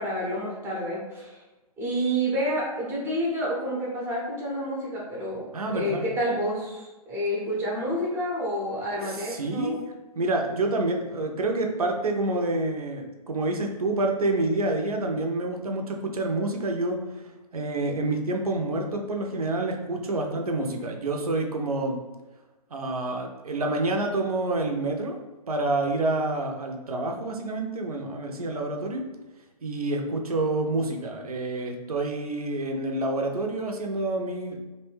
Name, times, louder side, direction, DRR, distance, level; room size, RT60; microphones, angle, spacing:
voice 1, 0.0-1.4 1.8-5.5 5.7-9.8, equal, 10° right, -4 dB, 0.6 m, -29 dB
voice 2, 5.5-6.1 9.1-9.8 10.2-17.2 17.5-22.0 22.7-25.2 25.5-29.0 29.6-34.6, right 2 dB, 70° right, 2 dB, 0.5 m, -28 dB
2.5 x 2.1 x 3.3 m, 1.1 s
figure-of-eight pair, 120°, 20 cm